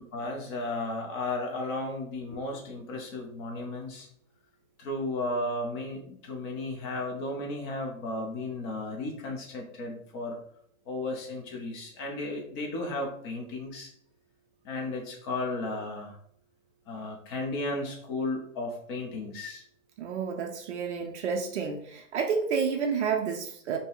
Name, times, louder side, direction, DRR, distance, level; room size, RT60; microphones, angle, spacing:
voice 1, 0.1-4.1 4.8-10.4 10.9-13.9 14.6-16.2 16.9-19.6, left 2 dB, 20° left, 1 dB, 0.4 m, -34 dB
voice 2, 20.0-23.8, right 6 dB, 55° right, 3 dB, 0.5 m, -30 dB
2.6 x 2.1 x 3.7 m, 0.65 s
hypercardioid pair, 135°, 43 cm